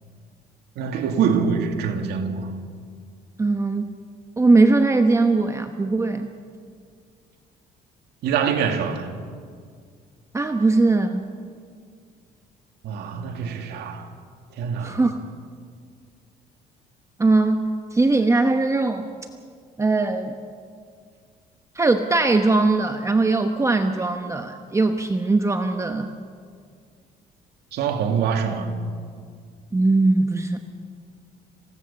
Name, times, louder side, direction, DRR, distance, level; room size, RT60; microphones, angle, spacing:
voice 1, 0.8-2.5 8.2-9.1 12.8-14.1 14.5-15.0 27.7-28.7, right 6 dB, 75° right, 2.6 m, -24 dB
voice 2, 3.4-3.9 4.4-6.3 10.3-11.3 14.8-15.2 17.2-19.1 19.8-20.3 21.7-26.1 29.7-30.6, right 3 dB, 15° right, 1.1 m, -20 dB
27.0 x 17.5 x 7.1 m
cardioid pair, 110°, 17 cm